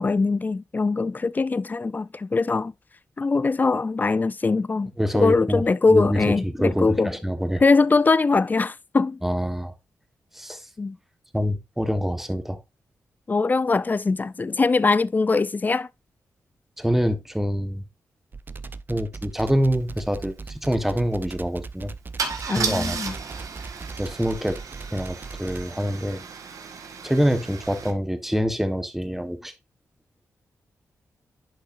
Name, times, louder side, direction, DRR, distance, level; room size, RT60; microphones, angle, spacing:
voice 1, 0.0-2.7 3.2-7.1 7.6-9.2 10.8-11.0 13.3-15.9 22.5-23.1, left 3 dB, 30° left, 0.4 m, -22 dB
voice 2, 5.0-5.6 5.9-7.6 9.2-9.7 10.3-10.7 11.3-12.6 16.8-17.8 18.9-21.9 22.6-23.1 24.0-24.6 24.9-26.3 27.0-29.5, equal, 5° right, 1.2 m, -25 dB
sound 1, 18.3-25.7, right 4 dB, 35° right, 0.5 m, -38 dB
Car / Engine starting / Idling, 19.6-19.7 19.9-20.2 22.2-27.9, right 5 dB, 70° right, 1.5 m, -34 dB
10.5 x 5.5 x 2.5 m
cardioid pair, 65°, 6 cm